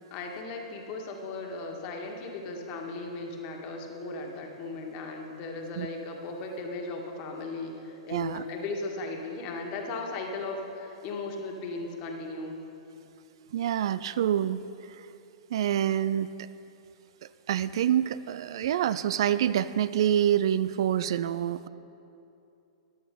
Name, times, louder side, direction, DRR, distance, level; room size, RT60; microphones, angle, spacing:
voice 1, 0.1-12.6, left 3 dB, 40° left, 2 dB, 1.8 m, -37 dB
voice 2, 8.1-8.4 13.5-14.6 15.5-16.3 17.5-21.7, right 10 dB, 60° right, 15 dB, 0.3 m, -26 dB
14.0 x 11.0 x 3.9 m, 2.8 s
figure-of-eight pair, 105°, 3 cm